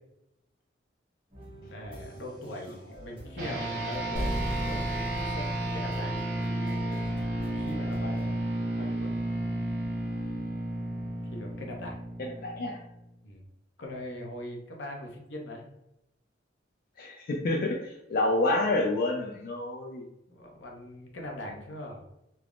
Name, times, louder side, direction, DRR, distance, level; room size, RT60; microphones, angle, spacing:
sound 1, 1.3-8.3, equal, 30° right, 0.9 m, -47 dB
voice 1, 1.6-4.8 5.3-5.4 5.7-6.2 7.5-8.4 8.7-9.1 11.3-12.0 13.2-13.4 13.8-15.7 20.3-22.0, left 1 dB, 80° left, 0 dB, 0.7 m, -41 dB
sound 2, 3.4-13.1, right 1 dB, 65° right, 1.0 m, -32 dB
sound 3, 4.1-6.9, equal, 5° right, 1.2 m, -35 dB
voice 2, 12.2-12.8 17.0-20.1, left 2 dB, 55° left, 0 dB, 0.4 m, -28 dB
3.3 x 2.0 x 2.4 m, 0.85 s
head